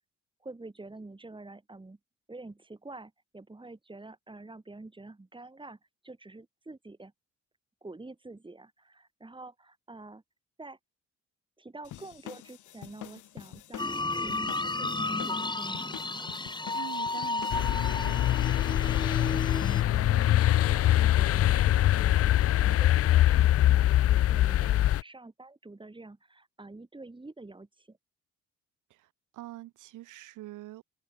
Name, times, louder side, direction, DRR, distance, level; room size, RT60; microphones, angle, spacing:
voice 1, 0.4-2.0 2.3-5.8 6.0-7.1 7.8-10.2 10.6-10.8 11.6-15.9 18.8-28.0, right 2 dB, 15° right, 4.7 m, -47 dB
sound 1, 11.8-17.7, left 13 dB, 80° left, 5.7 m, -46 dB
sound 2, 13.8-19.8, left 2 dB, 15° left, 2.1 m, -33 dB
voice 2, 16.7-18.2 28.9-30.8, right 16 dB, 90° right, 2.1 m, -45 dB
sound 3, 17.5-25.0, left 13 dB, 50° left, 0.4 m, -23 dB
cardioid pair, 90°, 30 cm